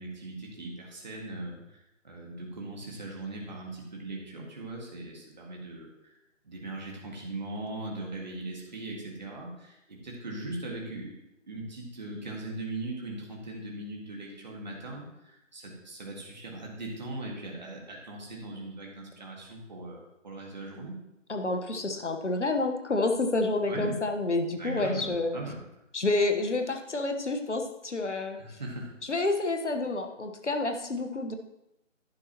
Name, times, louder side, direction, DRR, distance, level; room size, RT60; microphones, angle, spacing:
voice 1, 0.0-6.2 6.4-11.2 11.5-21.0 23.6-24.0 24.6-25.6 28.3-29.0, right 2 dB, 35° right, -1 dB, 1.8 m, -39 dB
voice 2, 21.3-25.4 25.9-28.4 29.1-31.3, left 2 dB, 65° left, 6 dB, 1.3 m, -29 dB
11.0 x 9.5 x 3.0 m, 0.89 s
figure-of-eight pair, 155°, 39 cm